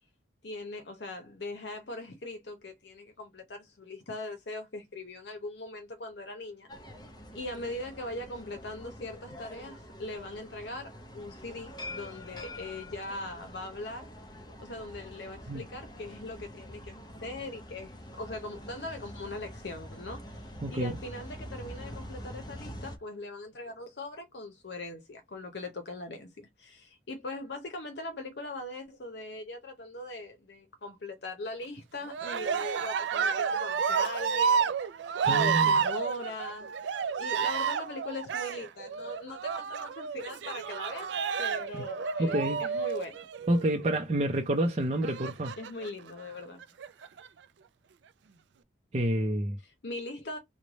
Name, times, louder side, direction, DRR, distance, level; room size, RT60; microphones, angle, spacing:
voice 1, 0.4-6.7 7.3-14.1 14.6-34.7 35.2-36.7 37.2-43.3 45.6-46.6 49.6-50.4, left 2 dB, 75° left, 0.7 m, -40 dB
sound 1, 6.7-23.0, left 1 dB, 25° left, 0.6 m, -45 dB
voice 2, 20.6-20.9 35.2-35.8 42.2-42.6 43.5-45.5 48.9-49.6, right 1 dB, 35° right, 0.5 m, -28 dB
Cheering, 32.1-43.8 45.0-45.9 46.6-47.3, right 6 dB, 90° right, 0.4 m, -30 dB
3.2 x 2.1 x 3.9 m
head